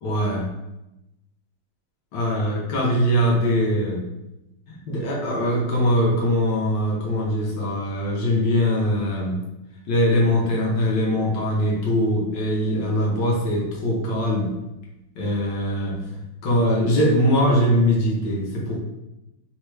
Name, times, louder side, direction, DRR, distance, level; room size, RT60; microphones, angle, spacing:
voice 1, 0.0-0.5 2.1-4.0 4.7-9.4 9.9-14.5 15.2-18.8, equal, 70° left, -3 dB, 1.3 m, -22 dB
3.4 x 2.2 x 3.1 m, 0.95 s
omnidirectional pair, 2.1 m